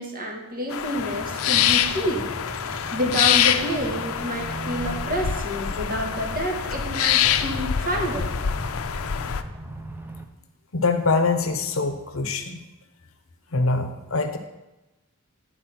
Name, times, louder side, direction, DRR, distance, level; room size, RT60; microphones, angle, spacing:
voice 1, 0.0-2.3 2.6-8.4, equal, 45° right, 0 dB, 1.7 m, -29 dB
sound 1, 0.7-9.4, left 9 dB, 90° left, 0.5 m, -25 dB
sound 2, 1.0-10.3, right 1 dB, 10° right, 0.6 m, -38 dB
voice 2, 10.7-12.6 13.5-14.4, left 3 dB, 70° left, 7 dB, 0.9 m, -24 dB
9.7 x 4.7 x 5.9 m, 0.99 s
head